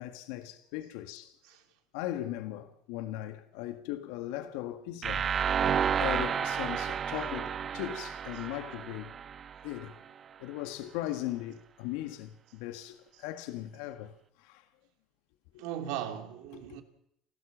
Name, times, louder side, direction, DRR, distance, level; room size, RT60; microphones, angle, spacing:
voice 1, 0.0-1.3 1.9-5.3 6.0-9.1 9.6-10.0 10.4-14.6 15.5-15.6 16.5-16.8, left 14 dB, 80° left, 1.7 m, -38 dB
sound 1, 5.0-9.9, right 7 dB, 45° right, 1.1 m, -31 dB
voice 2, 15.6-16.8, right 10 dB, 75° right, 3.0 m, -38 dB
29.5 x 13.0 x 7.3 m
hypercardioid pair, 75°, 0 cm